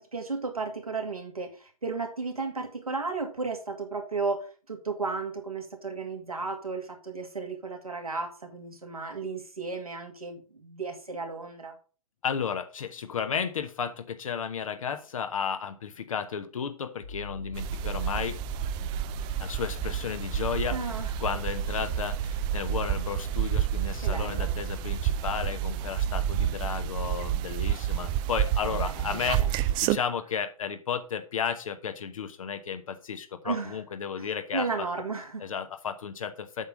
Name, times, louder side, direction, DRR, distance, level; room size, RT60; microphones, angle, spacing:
voice 1, 0.0-11.8 20.7-21.1 24.0-24.6 28.7-29.5 29.9-30.0 33.4-33.8 34.2-35.5, right 4 dB, 85° right, 3 dB, 2.1 m, -34 dB
voice 2, 12.2-18.4 19.4-34.9 35.4-36.7, left 7 dB, 65° left, 8 dB, 1.0 m, -33 dB
sound 1, 17.0-27.1, left 3 dB, 80° left, 2.4 m, -40 dB
sound 2, 17.5-30.0, right 12 dB, 25° right, 0.4 m, -30 dB
8.0 x 5.7 x 5.1 m, 0.37 s
figure-of-eight pair, 110°, 18 cm